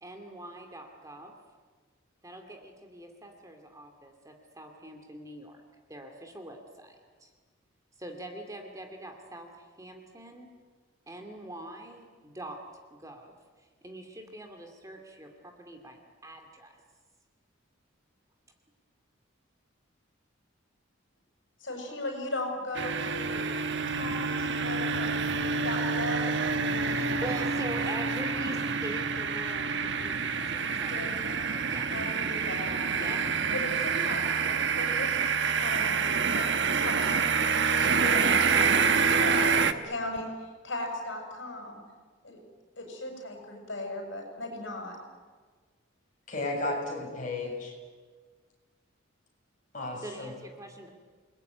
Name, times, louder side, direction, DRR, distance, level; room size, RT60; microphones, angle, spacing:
voice 1, 0.0-1.4 2.2-5.6 5.9-6.9 7.2-7.3 8.0-10.5 11.1-16.8 26.7-31.0 31.6-31.9 33.0-33.3 50.0-50.9, right 1 dB, 15° right, 4 dB, 2.6 m, -43 dB
voice 2, 21.6-23.5 23.9-26.4 30.7-31.4 31.9-33.2 33.5-35.2 35.6-36.1 36.3-41.8 42.2-42.4 42.8-45.0, left 1 dB, 65° left, 3 dB, 7.0 m, -37 dB
sound 1, 22.7-39.7, right 5 dB, 60° right, 1.3 m, -27 dB
voice 3, 46.3-47.7 49.7-50.3, left 2 dB, 40° left, 0 dB, 7.3 m, -33 dB
29.0 x 20.5 x 9.4 m, 1.5 s
head